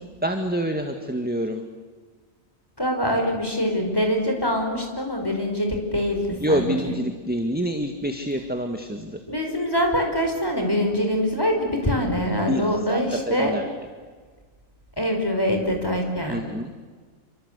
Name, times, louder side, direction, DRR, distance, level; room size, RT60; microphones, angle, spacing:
voice 1, 0.2-1.6 6.4-9.2 12.5-12.6 12.9-13.6 16.3-16.7, equal, 5° right, 5 dB, 1.8 m, -26 dB
voice 2, 2.8-7.0 9.3-13.5 15.0-16.4, equal, 15° left, 3 dB, 5.5 m, -24 dB
29.0 x 25.0 x 8.3 m, 1.5 s
omnidirectional pair, 1.4 m